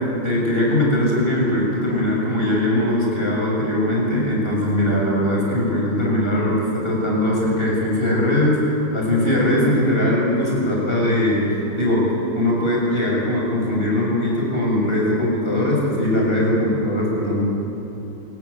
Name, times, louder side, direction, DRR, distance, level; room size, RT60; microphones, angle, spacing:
voice 1, 0.2-8.6 8.9-11.4 11.8-12.0 12.3-17.4, left 1 dB, 30° left, -3 dB, 7.0 m, -20 dB
29.5 x 17.0 x 8.5 m, 2.9 s
omnidirectional pair, 2.0 m